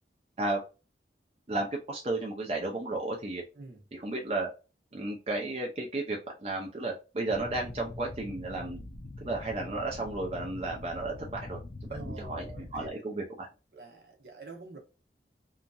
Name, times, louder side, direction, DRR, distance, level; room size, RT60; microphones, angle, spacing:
voice 1, 1.5-3.4 3.9-4.5 4.9-8.8 9.2-13.5, right 2 dB, 35° right, 0.5 m, -33 dB
The Underworld, 7.3-12.9, left 2 dB, 35° left, 0.4 m, -43 dB
voice 2, 11.9-12.9 13.7-14.8, right 2 dB, 65° right, 0.8 m, -46 dB
2.9 x 2.5 x 2.2 m
head